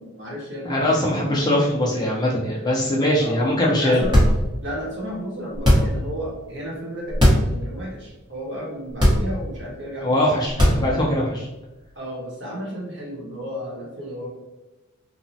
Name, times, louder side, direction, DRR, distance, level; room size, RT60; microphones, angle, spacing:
voice 1, 0.0-1.4 2.5-2.6 3.2-3.4 3.8-4.1 4.6-11.0 11.9-14.3, equal, 55° right, -3 dB, 0.9 m, -33 dB
voice 2, 0.6-4.0 10.0-11.5, left 1 dB, 20° left, -3 dB, 0.4 m, -21 dB
sound 1, 4.0-4.7 5.5-6.1 7.1-7.5 7.9-8.0 8.9-9.6 10.5-11.1, equal, 20° right, 0.7 m, -17 dB
3.1 x 2.1 x 2.6 m, 1.1 s
head